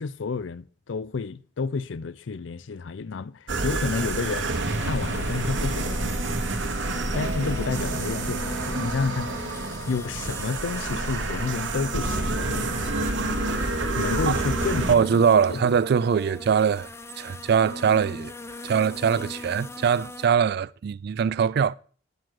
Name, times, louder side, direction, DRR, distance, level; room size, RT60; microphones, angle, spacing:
voice 1, 0.0-4.5 4.8-6.4 7.1-9.4 9.9-12.9 14.0-15.1 15.5-15.6, left 4 dB, 85° left, 0.5 m, -30 dB
sound 1, 3.5-14.9, right 2 dB, 80° right, 1.1 m, -28 dB
sound 2, 3.7-20.3, left 2 dB, 15° left, 0.5 m, -39 dB
voice 2, 14.9-16.9 17.2-18.3 18.6-21.7, right 7 dB, 60° right, 0.3 m, -22 dB
9.4 x 7.5 x 4.7 m
head